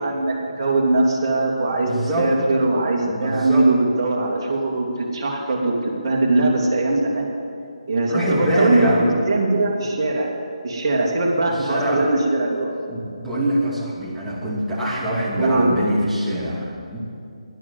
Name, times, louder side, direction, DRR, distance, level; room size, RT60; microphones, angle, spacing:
voice 1, 0.0-7.3 7.9-8.9 9.3-10.3 10.6-12.7 15.4-15.7, right 2 dB, 35° right, -2 dB, 2.7 m, -21 dB
voice 2, 1.8-2.3 3.1-3.7 8.1-9.2 11.5-12.1 12.9-17.0, equal, 5° right, -8 dB, 2.6 m, -24 dB
12.0 x 11.0 x 7.8 m, 2.5 s
figure-of-eight pair, 150°, 3 cm